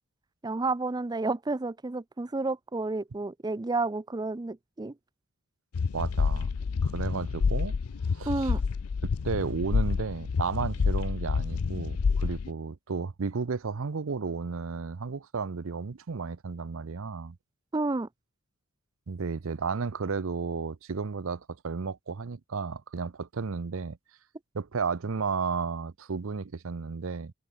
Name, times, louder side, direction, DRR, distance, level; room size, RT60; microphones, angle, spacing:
voice 1, 0.4-4.9 8.3-8.6 17.7-18.1, right 3 dB, 20° right, 0.4 m, -30 dB
sound 1, 5.7-12.5, left 5 dB, 85° left, 0.5 m, -28 dB
voice 2, 5.9-6.5 6.8-7.8 8.1-8.5 9.0-17.4 19.1-24.0 24.5-27.3, right 5 dB, 60° right, 0.6 m, -33 dB
open air
head